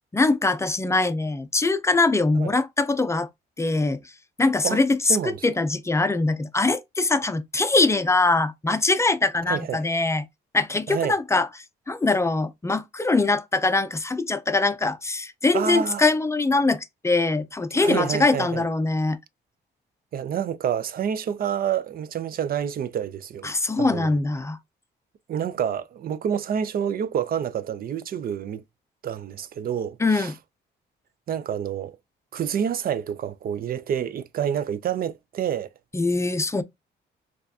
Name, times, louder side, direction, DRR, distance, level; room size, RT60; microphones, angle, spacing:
voice 1, 0.1-3.3 3.6-4.0 4.4-10.2 10.5-11.5 11.9-19.2 23.4-24.6 30.0-30.3 35.9-36.6, left 3 dB, 15° left, 0.4 m, -22 dB
voice 2, 5.1-5.5 9.5-9.8 10.9-11.2 15.5-16.1 17.7-18.7 20.1-23.5 23.8-24.2 25.3-28.6 29.0-30.3 31.3-32.0 32.3-35.7, right 8 dB, 50° right, 0.4 m, -28 dB
4.4 x 2.4 x 2.6 m
cardioid pair, 90°, 20 cm